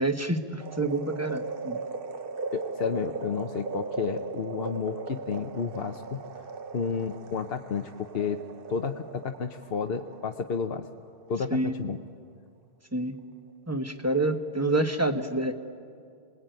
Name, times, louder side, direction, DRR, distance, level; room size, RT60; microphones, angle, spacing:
voice 1, 0.0-1.8 11.5-11.7 12.9-13.2 13.7-15.5, right 2 dB, 15° right, 6 dB, 1.2 m, -27 dB
sound 1, 0.6-10.9 11.3-11.4, right 4 dB, 60° right, 1.1 m, -38 dB
voice 2, 2.5-6.2 6.7-8.4 8.7-10.8 11.3-12.0, left 6 dB, 65° left, 5 dB, 1.1 m, -31 dB
27.5 x 20.5 x 9.2 m, 2.3 s
omnidirectional pair, 1.1 m